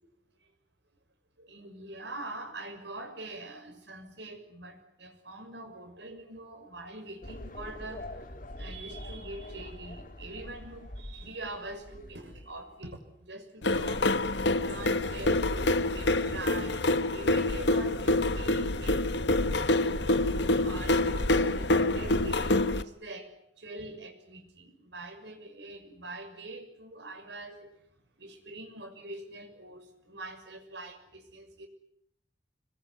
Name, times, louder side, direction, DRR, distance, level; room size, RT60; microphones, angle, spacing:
voice 1, 1.4-19.2 19.9-23.3 23.6-27.7 28.2-31.7, right 2 dB, 75° right, 6 dB, 6.4 m, -44 dB
sound 1, 7.2-12.9, left 1 dB, 45° left, 2.4 m, -44 dB
sound 2, 13.6-22.8, left 2 dB, 70° left, 1.3 m, -26 dB
26.0 x 22.0 x 9.7 m, 0.72 s
head